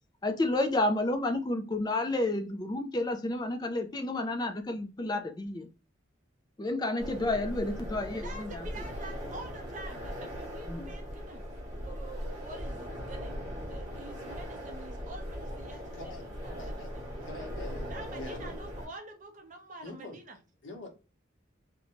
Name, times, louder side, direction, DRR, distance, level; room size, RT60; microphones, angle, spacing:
voice 1, 0.2-5.7 6.6-8.7 10.7-10.9, left 2 dB, 20° left, 0.3 m, -30 dB
sound 1, 7.0-18.9, equal, 15° right, 1.1 m, -39 dB
voice 2, 8.1-11.4 11.7-13.4 13.7-17.0 17.9-20.4, right 2 dB, 40° right, 0.7 m, -47 dB
voice 3, 15.7-16.9 17.2-18.5 19.8-20.2 20.6-20.9, left 2 dB, 75° left, 0.9 m, -45 dB
2.6 x 2.2 x 2.9 m
head